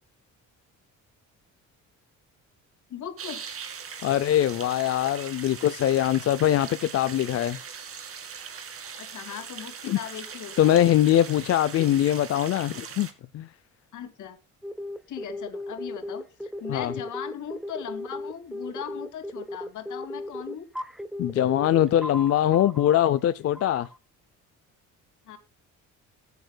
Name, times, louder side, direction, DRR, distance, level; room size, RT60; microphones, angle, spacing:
voice 1, 2.9-3.4 9.0-10.8 11.8-11.9 13.9-14.4 15.1-20.7 25.3-25.4, left 9 dB, 70° left, 2.4 m, -38 dB
sound 1, 3.2-13.1, right 6 dB, 45° right, 2.0 m, -40 dB
voice 2, 4.0-7.6 9.9-10.0 10.6-13.1 13.3-13.5 16.7-16.9 21.2-23.9, left 12 dB, 50° left, 0.5 m, -22 dB
sound 2, 14.6-23.0 23.5-24.0, left 1 dB, ahead, 0.6 m, -36 dB
19.5 x 9.3 x 2.3 m
cardioid pair, 150°, 31 cm